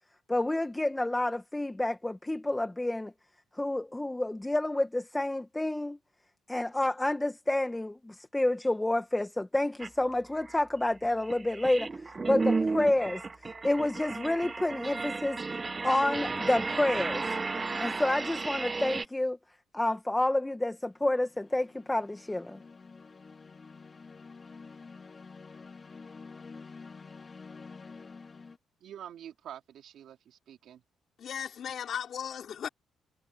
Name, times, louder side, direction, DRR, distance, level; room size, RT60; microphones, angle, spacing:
voice 1, 0.3-3.1 3.5-6.0 6.5-13.2 13.6-15.4 15.8-17.2 17.8-19.4 19.7-22.6, left 1 dB, 10° left, 1.4 m, -29 dB
sound 1, 9.8-9.9 10.4-19.0, right 4 dB, 25° right, 0.8 m, -33 dB
sound 2, 14.4-14.8 20.7-28.6, left 4 dB, 35° left, 2.2 m, -49 dB
voice 2, 28.8-30.8, right 10 dB, 70° right, 3.0 m, -47 dB
voice 3, 31.2-32.7, left 8 dB, 60° left, 4.8 m, -36 dB
cardioid pair, 90°, 0 cm